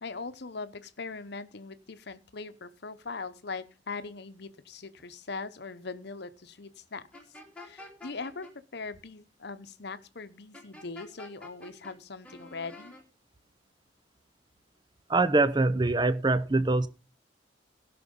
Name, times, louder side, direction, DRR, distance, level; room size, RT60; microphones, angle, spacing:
voice 1, 0.0-7.0 7.6-12.9, left 4 dB, 60° left, 0.9 m, -40 dB
sound 1, 7.1-8.5 10.5-11.9 12.2-13.0, left 2 dB, 5° left, 2.4 m, -48 dB
voice 2, 15.1-16.9, right 2 dB, 25° right, 0.7 m, -24 dB
16.5 x 6.0 x 5.3 m
head